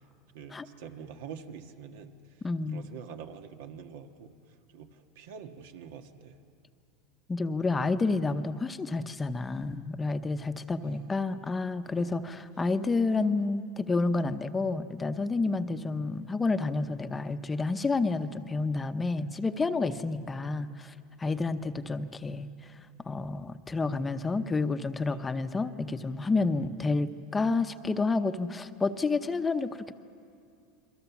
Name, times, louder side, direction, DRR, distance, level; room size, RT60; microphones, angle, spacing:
voice 1, 0.3-2.4 2.7-4.3 4.7-6.4 10.8-11.1 12.0-12.2 19.9-20.1 21.3-21.5 25.1-25.3, right 7 dB, 85° right, 6 dB, 1.5 m, -46 dB
voice 2, 2.4-2.9 7.3-20.9 21.2-22.5 23.1-29.9, left 3 dB, 15° left, 9 dB, 0.8 m, -29 dB
29.0 x 22.5 x 7.1 m, 2.4 s
supercardioid pair, 140°, 0 cm